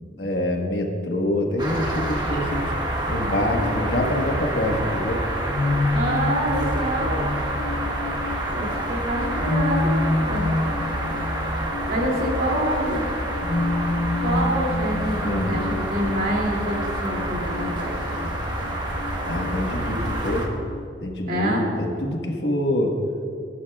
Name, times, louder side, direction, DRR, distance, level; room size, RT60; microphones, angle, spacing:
voice 1, 0.2-2.7 3.1-5.2 15.2-15.6 19.3-20.5 21.0-22.9, left 1 dB, 65° left, 1 dB, 1.4 m, -25 dB
sound 1, 1.6-20.5, right 1 dB, 25° right, 1.3 m, -28 dB
sound 2, 3.1-20.9, left 2 dB, 40° left, 0.5 m, -30 dB
voice 2, 5.9-7.2 8.5-10.5 11.9-13.1 14.2-18.0 21.3-21.6, right 1 dB, 55° right, -2 dB, 2.6 m, -26 dB
18.5 x 11.0 x 2.4 m, 2.5 s
head